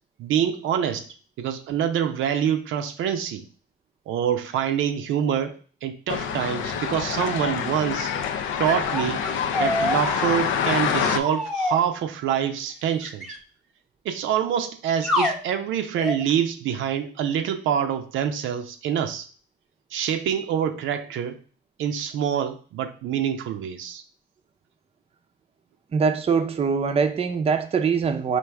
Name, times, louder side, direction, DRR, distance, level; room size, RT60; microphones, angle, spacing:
voice 1, 0.2-1.1 1.4-3.4 4.1-8.1 8.6-9.2 9.6-13.3 14.0-19.3 19.9-21.4 21.8-24.0, right 9 dB, 80° right, 7 dB, 0.5 m, -26 dB
sound 1, 6.1-11.2, left 7 dB, 75° left, 0.4 m, -26 dB
sound 2, 8.6-11.8 13.0-13.4 15.0-15.4 16.0-16.2, left 1 dB, ahead, 0.8 m, -27 dB
voice 2, 25.9-28.4, right 5 dB, 30° right, 7 dB, 0.5 m, -23 dB
4.7 x 2.5 x 3.3 m, 0.40 s
cardioid pair, 90°, 20 cm